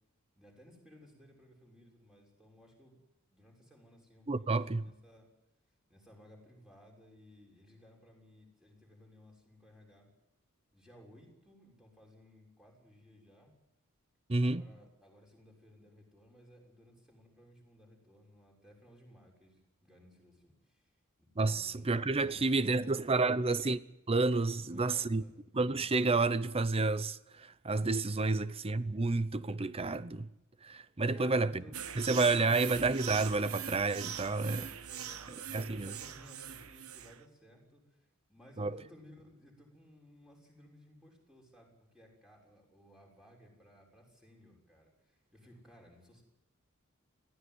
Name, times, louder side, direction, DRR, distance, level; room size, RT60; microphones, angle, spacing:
voice 1, 0.4-3.0 3.3-5.3 5.9-10.1 10.7-13.5 14.4-20.9 21.2-21.9 22.1-23.6 24.5-25.4 31.1-32.7 34.1-46.2, equal, 5° right, 6.4 m, -59 dB
voice 2, 4.3-4.9 14.3-14.6 21.4-23.8 24.1-25.2 25.5-30.3 30.6-31.6 32.0-34.7 35.3-35.9 38.6-38.7, right 3 dB, 25° right, 0.7 m, -30 dB
sound 1, 31.7-37.2, right 9 dB, 85° right, 1.2 m, -42 dB
21.5 x 16.0 x 9.7 m
head